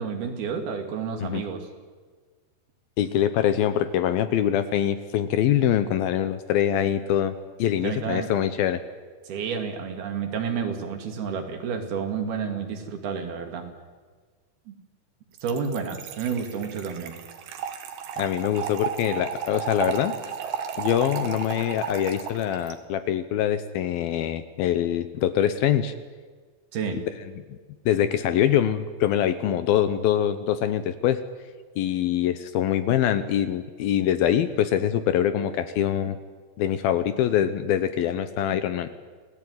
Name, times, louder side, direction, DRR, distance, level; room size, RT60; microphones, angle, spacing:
voice 1, 0.0-1.6 7.8-8.3 9.3-13.7 14.7-14.8 15.4-17.2 26.7-27.0, right 6 dB, 65° right, 6 dB, 4.2 m, -30 dB
voice 2, 3.0-8.8 18.2-20.1 20.8-25.9 27.5-27.6 27.9-31.2 31.8-36.2 36.6-38.9, left 10 dB, 70° left, 12 dB, 2.5 m, -24 dB
Trickle dribble / Fill (with liquid), 15.4-22.7, right 8 dB, 80° right, 4.1 m, -34 dB
28.0 x 18.0 x 9.6 m, 1.5 s
omnidirectional pair, 4.9 m